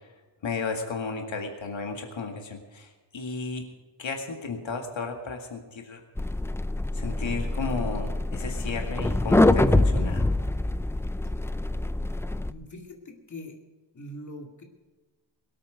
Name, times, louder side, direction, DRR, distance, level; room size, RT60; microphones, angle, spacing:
voice 1, 0.4-3.6 4.0-6.0 6.9-10.4, left 4 dB, 75° left, 3 dB, 2.0 m, -34 dB
sound 1, 6.2-12.5, left 2 dB, 5° left, 0.3 m, -25 dB
voice 2, 12.4-13.6 13.9-14.6, left 1 dB, 40° left, 1 dB, 2.3 m, -42 dB
22.5 x 8.8 x 5.1 m, 1.3 s
wide cardioid pair, 150°, 46 cm